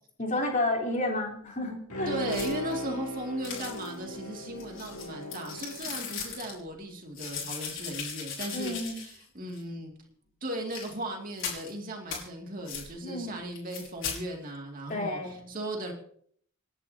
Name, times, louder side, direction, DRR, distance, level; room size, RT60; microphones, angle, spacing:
voice 1, 0.2-2.1 8.5-9.0 13.0-13.4 14.9-15.5, left 2 dB, 35° left, 0 dB, 3.7 m, -31 dB
Bowed string instrument, 1.9-6.5 6.9-7.0, left 1 dB, 85° left, 2.9 m, -38 dB
voice 2, 2.1-9.9 10.4-15.9, right 1 dB, 40° right, 1 dB, 2.5 m, -37 dB
sound 1, 2.3-2.8 3.4-4.0 4.6-6.5 7.1-9.2 9.5-9.6 10.6-10.9 11.4-11.7 12.1-12.2 12.7-12.9 13.5-14.2, left 6 dB, 60° left, 6.3 m, -38 dB
28.5 x 11.0 x 2.9 m, 0.62 s
head